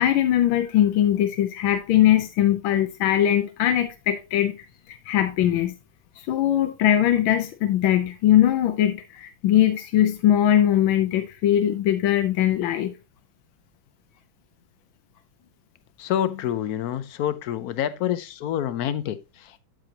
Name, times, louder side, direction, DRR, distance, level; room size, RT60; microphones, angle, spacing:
voice 1, 0.0-4.6 4.9-5.7 6.3-12.9, left 11 dB, 90° left, 1.5 m, -21 dB
voice 2, 16.0-19.6, left 10 dB, 65° left, 0.9 m, -27 dB
12.0 x 4.9 x 2.8 m
omnidirectional pair, 2.1 m